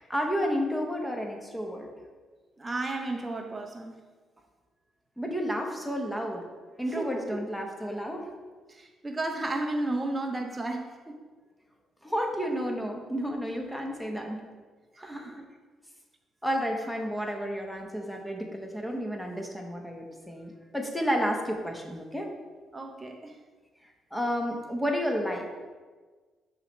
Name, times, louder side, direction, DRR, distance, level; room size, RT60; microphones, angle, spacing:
voice 1, 0.0-1.9 5.2-6.5 6.8-8.3 12.0-14.4 15.0-15.4 16.4-22.3 24.1-25.5, equal, 5° left, 2 dB, 1.0 m, -31 dB
voice 2, 2.6-4.0 7.0-7.4 8.7-11.2 15.0-15.5 22.7-23.4, right 2 dB, 20° right, 2 dB, 0.6 m, -33 dB
6.1 x 3.3 x 5.4 m, 1.4 s
cardioid pair, 90°, 0 cm